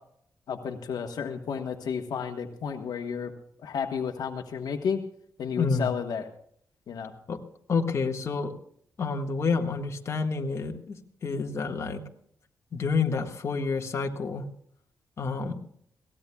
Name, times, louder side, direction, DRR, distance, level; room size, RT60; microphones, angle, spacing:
voice 1, 0.5-3.3 3.6-5.0 5.4-6.2 6.9-7.1, left 6 dB, 80° left, 5 dB, 1.3 m, -32 dB
voice 2, 5.6-5.9 7.3-7.4 7.7-8.5 9.0-12.0 12.7-14.5 15.2-15.6, left 4 dB, 45° left, 2 dB, 1.7 m, -29 dB
22.5 x 17.5 x 2.3 m, 0.66 s
wide cardioid pair, 120°, 7 cm